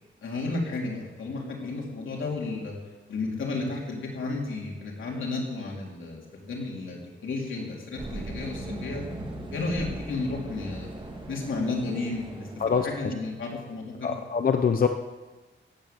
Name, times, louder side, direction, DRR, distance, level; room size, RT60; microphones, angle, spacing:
voice 1, 0.2-2.8 3.1-9.0 9.5-10.9 11.3-12.5 12.8-14.1, left 3 dB, 85° left, -2 dB, 3.8 m, -32 dB
sound 1, 7.9-12.9, right 2 dB, 25° right, 2.2 m, -38 dB
voice 2, 14.0-14.9, left 6 dB, 50° left, 6 dB, 0.8 m, -23 dB
16.0 x 8.9 x 7.8 m, 1.2 s
wide cardioid pair, 130°, 20 cm